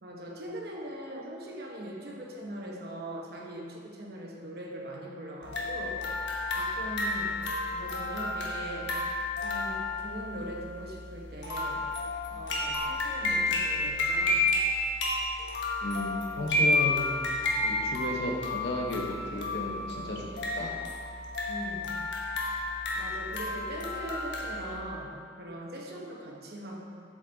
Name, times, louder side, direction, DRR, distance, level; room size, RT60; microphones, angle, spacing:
voice 1, 0.0-8.9 9.4-11.8 12.3-14.5 21.5-22.0 22.9-26.8, right 1 dB, 60° right, -2 dB, 1.0 m, -41 dB
sound 1, 5.4-24.8, left 2 dB, 90° left, 1.1 m, -31 dB
voice 2, 15.8-17.1 17.6-20.7, left 1 dB, 65° left, 0 dB, 1.0 m, -34 dB
7.6 x 5.2 x 3.9 m, 2.3 s
head